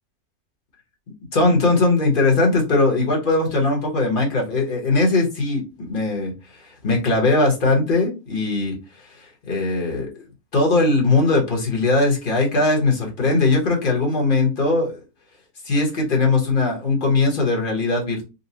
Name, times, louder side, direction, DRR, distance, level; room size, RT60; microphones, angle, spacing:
voice 1, 1.3-8.7 9.2-10.1 10.5-15.0 15.6-18.2, left 3 dB, 35° left, -1 dB, 1.1 m, -20 dB
4.1 x 2.3 x 2.7 m, 0.29 s
omnidirectional pair, 1.7 m